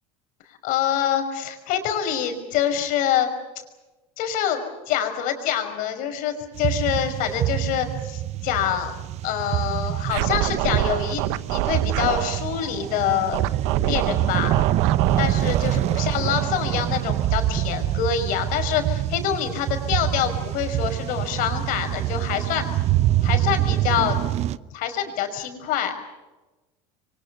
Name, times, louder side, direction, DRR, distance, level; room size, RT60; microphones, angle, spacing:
voice 1, 0.6-3.3 4.2-4.6 4.9-8.9 9.2-11.2 11.5-13.4 13.8-14.5 15.2-22.6 23.2-24.2 24.7-25.9, left 9 dB, 60° left, 7 dB, 5.6 m, -25 dB
sound 1, 6.6-24.6, right 13 dB, 45° right, 0.9 m, -25 dB
Scratching (performance technique), 10.0-12.4 13.3-17.6, right 15 dB, 80° right, 1.1 m, -27 dB
28.0 x 24.0 x 7.1 m, 1.2 s
supercardioid pair, 130°, 16 cm